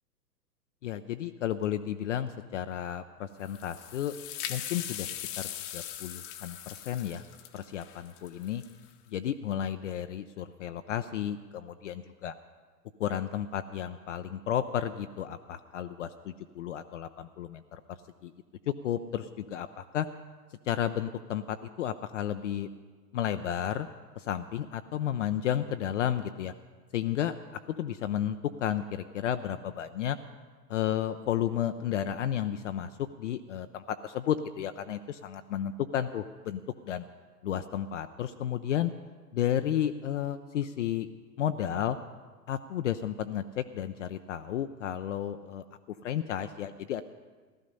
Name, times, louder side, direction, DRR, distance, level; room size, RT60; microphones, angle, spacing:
voice 1, 0.8-4.1 4.5-7.2 7.5-8.6 9.1-12.3 13.0-18.3 18.7-20.1 20.7-22.7 23.1-23.9 24.2-26.5 26.9-27.3 27.8-30.2 30.7-32.9 33.2-37.0 37.4-38.9 39.3-41.1 41.4-42.0 42.5-45.6 46.0-47.0, left 10 dB, 50° left, 9 dB, 0.5 m, -32 dB
sound 1, 3.4-8.9, left 11 dB, 30° left, 0.9 m, -40 dB
15.5 x 12.5 x 5.4 m, 1.4 s
hypercardioid pair, 120°, 49 cm